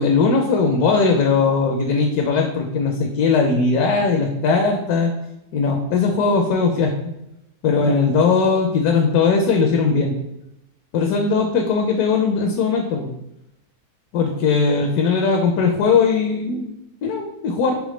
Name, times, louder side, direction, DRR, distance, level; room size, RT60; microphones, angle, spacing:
voice 1, 0.0-5.1 5.5-6.9 7.6-10.1 10.9-13.1 14.1-16.7 17.0-17.8, left 4 dB, 75° left, 2 dB, 1.0 m, -19 dB
4.9 x 3.4 x 3.1 m, 0.89 s
omnidirectional pair, 1.7 m